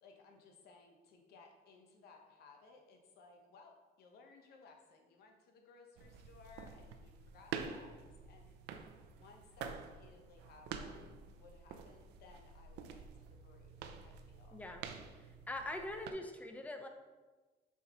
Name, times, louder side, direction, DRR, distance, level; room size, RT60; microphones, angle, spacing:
voice 1, 0.0-8.8 9.1-14.6 15.6-15.9, left 4 dB, 70° left, 3 dB, 1.0 m, -61 dB
sound 1, 6.0-16.1, right 6 dB, 85° right, 0.5 m, -48 dB
voice 2, 14.5-14.8 15.2-16.9, left 1 dB, 10° left, 5 dB, 0.6 m, -43 dB
6.8 x 4.8 x 3.0 m, 1.3 s
cardioid pair, 110°, 17 cm